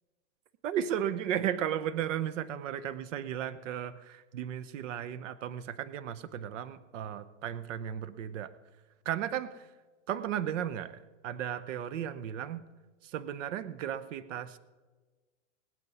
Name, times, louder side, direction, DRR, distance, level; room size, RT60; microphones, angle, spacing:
voice 1, 0.6-8.5 9.1-9.7 10.1-12.6 13.0-14.6, right 10 dB, 70° right, 13 dB, 0.8 m, -35 dB
18.5 x 8.3 x 5.3 m, 1.3 s
supercardioid pair, 160°, 39 cm